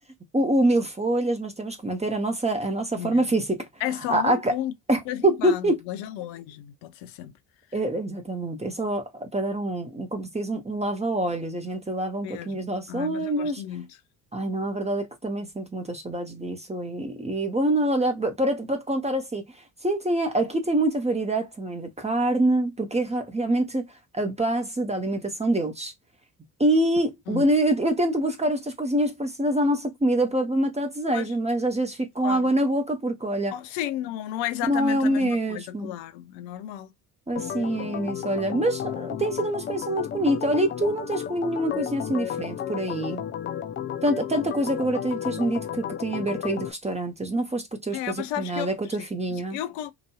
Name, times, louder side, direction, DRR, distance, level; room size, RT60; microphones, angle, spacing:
voice 1, 0.3-3.7 4.1-4.5 4.9-5.8 7.7-13.6 14.3-19.5 19.8-23.9 24.1-25.9 26.6-33.5 34.7-35.9 37.3-43.3 44.0-49.6, right 1 dB, 15° right, 0.9 m, -25 dB
voice 2, 2.9-3.4 3.8-4.7 5.1-7.4 12.2-14.0 27.3-27.5 31.1-31.3 32.2-32.5 33.5-36.9 37.8-38.3 47.9-49.9, left 12 dB, 65° left, 0.7 m, -33 dB
Organ, 37.4-46.7, left 9 dB, 25° left, 0.4 m, -33 dB
3.0 x 2.6 x 2.2 m
hypercardioid pair, 55°, 49 cm